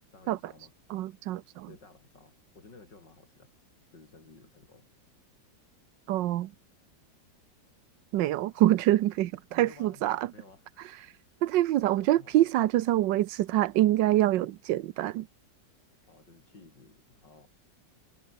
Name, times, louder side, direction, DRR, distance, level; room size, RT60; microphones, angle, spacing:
voice 1, 0.1-0.7 1.7-3.5 3.9-4.9 9.6-10.1 10.3-11.4 11.9-12.5 16.1-17.5, left 3 dB, 75° left, 5.2 m, -54 dB
voice 2, 0.9-1.7 6.1-6.5 8.1-10.3 10.8-11.1 11.4-15.3, right 14 dB, 85° right, 1.4 m, -25 dB
omnidirectional pair, 1.9 m